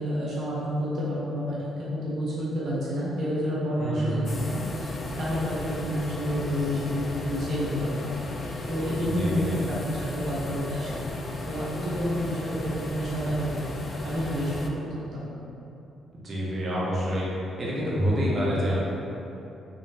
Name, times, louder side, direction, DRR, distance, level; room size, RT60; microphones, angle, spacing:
voice 1, 0.0-4.9 5.2-7.9 8.7-10.9 11.5-12.6 12.9-13.3 14.0-14.5 15.1-15.2, equal, 65° right, -8 dB, 0.8 m, -29 dB
voice 2, 3.8-4.3 9.1-9.6 16.2-17.3 17.6-18.7, equal, 35° right, -7 dB, 0.9 m, -27 dB
sound 1, 4.3-14.7, left 2 dB, 40° left, 0.4 m, -35 dB
3.8 x 3.1 x 2.8 m, 2.9 s
cardioid pair, 90°, 0 cm